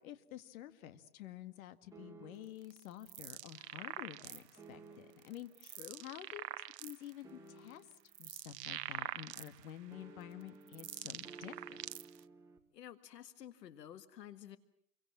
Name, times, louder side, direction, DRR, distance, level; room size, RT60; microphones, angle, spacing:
voice 1, 0.0-7.9 8.2-11.8, left 11 dB, 55° left, 10 dB, 2.1 m, -50 dB
sound 1, 1.9-2.7 4.6-5.4 7.2-8.1 9.9-12.6, right 3 dB, 5° right, 2.3 m, -55 dB
sound 2, 2.6-4.6 5.2-7.1 7.7-9.8 10.4-12.2, right 13 dB, 75° right, 1.0 m, -45 dB
sound 3, 3.7-7.4, left 3 dB, 15° left, 2.5 m, -72 dB
voice 2, 5.6-6.0 12.7-14.6, left 11 dB, 80° left, 11 dB, 1.8 m, -52 dB
28.5 x 23.5 x 7.4 m, 0.67 s
hypercardioid pair, 150°, 49 cm